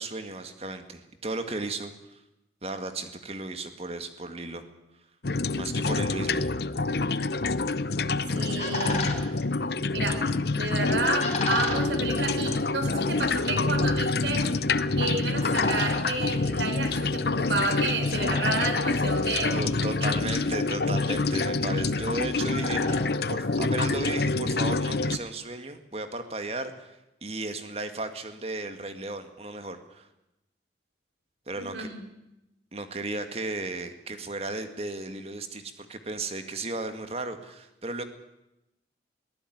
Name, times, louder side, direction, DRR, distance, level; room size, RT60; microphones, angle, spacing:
voice 1, 0.0-2.2 2.6-4.6 5.6-6.5 19.5-30.1 31.5-31.9 32.7-38.0, right 2 dB, 35° right, 8 dB, 2.0 m, -35 dB
sound 1, 5.2-25.2, left 3 dB, 65° left, 0.8 m, -27 dB
sound 2, 7.9-24.2, left 3 dB, 40° left, 4.2 m, -39 dB
voice 2, 8.3-9.2 9.9-14.5 15.0-19.6 20.0-20.1 31.5-32.0, right 3 dB, 85° right, 7 dB, 4.6 m, -31 dB
22.5 x 16.0 x 9.4 m, 0.90 s
head